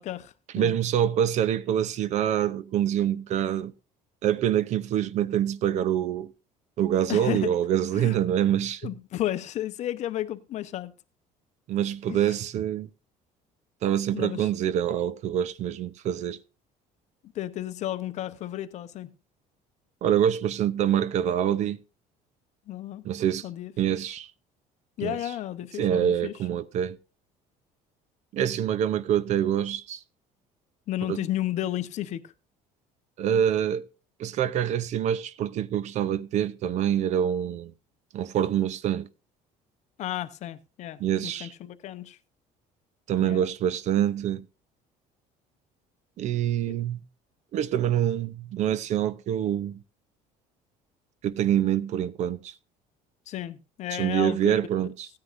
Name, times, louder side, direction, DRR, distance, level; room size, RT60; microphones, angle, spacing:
voice 1, 0.0-0.8 7.1-7.5 7.9-8.2 8.8-10.9 12.1-12.4 14.1-14.5 17.3-19.1 22.7-23.0 23.4-23.9 25.0-26.3 30.9-32.3 40.0-42.2 43.2-43.5 46.7-46.8 53.3-54.6, left 13 dB, 55° left, 0.8 m, -33 dB
voice 2, 0.5-3.7 4.2-6.3 6.8-8.9 11.7-12.9 13.8-16.4 20.0-21.8 23.0-23.5 23.8-24.3 25.0-25.2 25.8-27.0 28.3-30.0 31.1-31.2 33.2-33.8 34.2-37.7 38.1-39.1 41.0-41.5 43.1-44.4 46.2-47.0 47.5-49.8 51.2-52.5 53.9-55.1, right 10 dB, 50° right, 0.6 m, -25 dB
16.0 x 9.7 x 2.5 m
cardioid pair, 140°, 15 cm